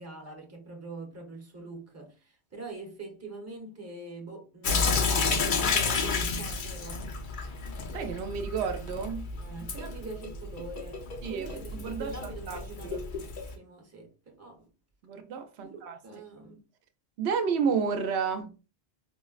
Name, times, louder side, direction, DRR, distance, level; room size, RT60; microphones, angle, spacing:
voice 1, 0.0-7.2 9.3-14.6 15.6-16.6, right 2 dB, 15° right, 0.8 m, -44 dB
Sink (filling or washing) / Drip, 4.6-13.5, left 4 dB, 60° left, 0.7 m, -31 dB
voice 2, 7.9-9.3 11.2-13.0 15.0-16.0 17.2-18.5, right 6 dB, 90° right, 0.8 m, -31 dB
4.5 x 2.0 x 2.4 m
omnidirectional pair, 1.1 m